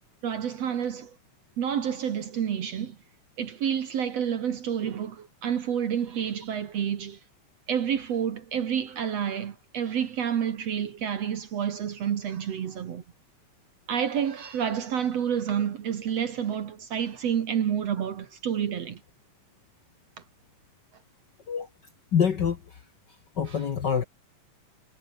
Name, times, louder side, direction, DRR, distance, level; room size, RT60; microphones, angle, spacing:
voice 1, 0.2-1.1 1.6-3.0 3.4-7.2 7.7-13.0 13.9-19.0 23.4-23.7, right 8 dB, 55° right, 2.4 m, -29 dB
voice 2, 22.1-22.6 23.4-24.0, left 7 dB, 60° left, 1.1 m, -25 dB
omnidirectional pair, 3.8 m